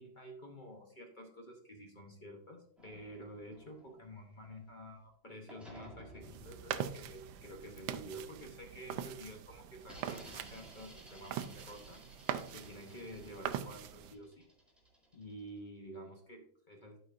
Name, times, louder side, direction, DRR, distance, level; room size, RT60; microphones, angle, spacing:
voice 1, 0.0-12.0 12.5-14.4 15.1-17.0, equal, 45° left, 2 dB, 0.6 m, -50 dB
sound 1, 2.8-5.1 5.5-9.1 9.8-15.6, equal, ahead, 1.9 m, -57 dB
sound 2, 6.2-14.1, right 10 dB, 80° right, 1.3 m, -43 dB
12.0 x 5.1 x 2.5 m, 0.67 s
omnidirectional pair, 2.1 m